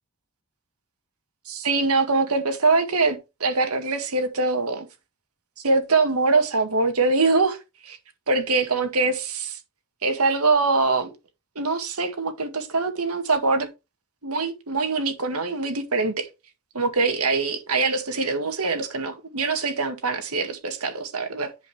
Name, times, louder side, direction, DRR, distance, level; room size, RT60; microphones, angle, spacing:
voice 1, 1.5-4.9 5.6-7.6 7.8-8.0 8.3-9.6 10.0-11.1 11.6-13.7 14.2-16.3 16.7-21.5, right 3 dB, 85° right, 1.9 m, -23 dB
10.5 x 5.3 x 3.6 m
head